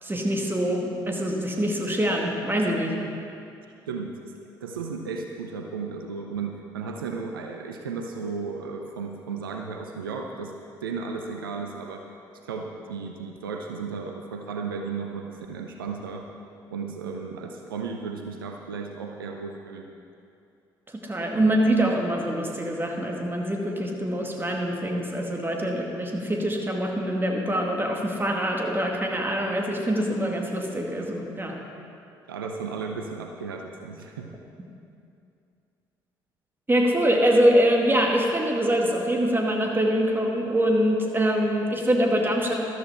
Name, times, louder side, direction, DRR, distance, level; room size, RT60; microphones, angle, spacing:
voice 1, 0.0-3.0 20.9-31.6 36.7-42.5, equal, 20° right, 1 dB, 2.2 m, -24 dB
voice 2, 3.9-4.3 4.6-10.5 10.8-12.1 12.4-16.3 16.7-19.9 32.3-34.3, right 5 dB, 85° right, 3 dB, 0.7 m, -34 dB
13.5 x 12.5 x 4.3 m, 2.6 s
figure-of-eight pair, 45°, 11 cm